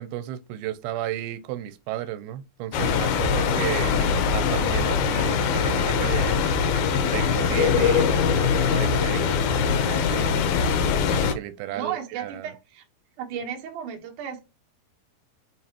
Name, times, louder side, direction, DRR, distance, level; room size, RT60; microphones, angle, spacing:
voice 1, 0.0-6.5 7.0-10.4 11.2-12.5, right 13 dB, 90° right, 2.6 m, -34 dB
sound 1, 0.6-1.3 2.0-2.1 3.0-3.1 3.7-3.8 4.2-4.3 5.1-9.5, right 4 dB, 35° right, 3.4 m, -44 dB
sound 2, 2.7-11.3, left 6 dB, 75° left, 1.8 m, -22 dB
voice 2, 11.7-12.8 13.2-14.4, right 8 dB, 65° right, 2.6 m, -34 dB
8.5 x 3.8 x 2.9 m
omnidirectional pair, 4.3 m